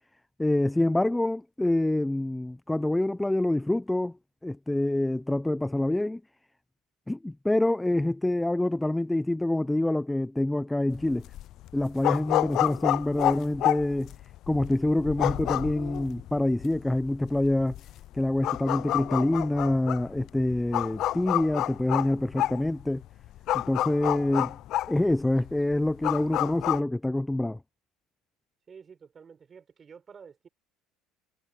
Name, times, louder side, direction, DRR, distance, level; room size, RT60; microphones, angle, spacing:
voice 1, 0.4-4.1 4.4-6.2 7.1-11.2 11.7-14.1 14.5-17.7 18.1-23.0 23.5-24.6 24.9-27.6, left 1 dB, 5° left, 0.6 m, -26 dB
sound 1, 10.9-26.8, left 14 dB, 60° left, 0.4 m, -30 dB
voice 2, 28.7-30.5, right 6 dB, 30° right, 4.9 m, -50 dB
cardioid pair, 115°, 0 cm